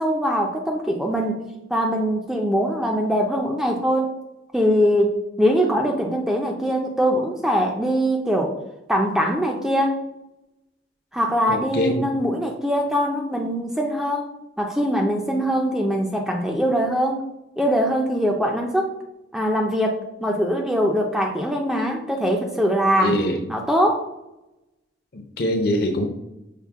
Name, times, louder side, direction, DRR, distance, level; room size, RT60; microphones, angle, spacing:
voice 1, 0.0-4.2 4.5-8.5 8.9-10.0 11.1-14.3 14.6-17.2 17.6-19.0 19.3-23.2 23.5-24.0, equal, 5° right, 1 dB, 0.3 m, -22 dB
voice 2, 11.5-12.1 23.0-23.4 25.1-26.1, left 1 dB, 55° left, 4 dB, 0.6 m, -23 dB
5.7 x 2.1 x 3.5 m, 0.90 s
head